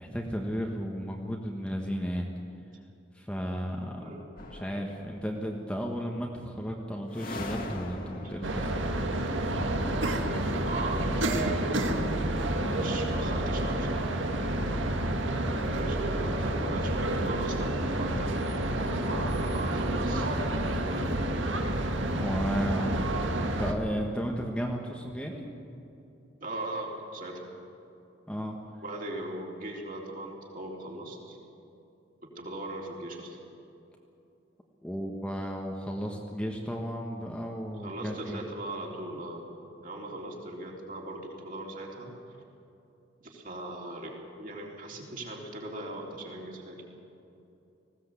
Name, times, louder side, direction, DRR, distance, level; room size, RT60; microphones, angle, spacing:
voice 1, 0.0-2.3 3.1-4.1 4.5-8.7 12.6-12.9 19.0-19.3 22.2-25.5 28.3-28.6 34.8-38.4, equal, 5° left, 0 dB, 1.4 m, -34 dB
voice 2, 4.0-4.3 8.2-8.3 10.2-11.4 12.1-12.3 12.7-14.1 15.6-18.4 18.9-20.3 20.8-21.2 26.4-27.5 28.8-31.4 32.2-33.4 37.8-39.4 39.8-42.1 43.2-46.8, right 1 dB, 45° right, -2 dB, 3.8 m, -39 dB
sound 1, 4.4-5.5 7.1-10.0, left 1 dB, 50° left, 1.9 m, -42 dB
sound 2, 8.4-23.7, right 1 dB, 75° right, 1.8 m, -29 dB
19.5 x 16.5 x 8.3 m, 2.8 s
head